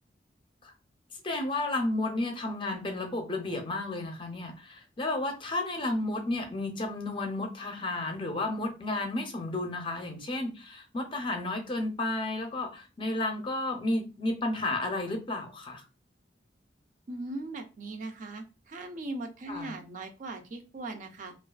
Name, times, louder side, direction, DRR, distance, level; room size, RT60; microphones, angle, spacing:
voice 1, 1.2-15.8 19.5-19.7, left 2 dB, 30° left, 4 dB, 0.5 m, -32 dB
voice 2, 17.1-21.3, right 2 dB, 45° right, 5 dB, 0.4 m, -39 dB
2.3 x 2.3 x 2.3 m, 0.30 s
head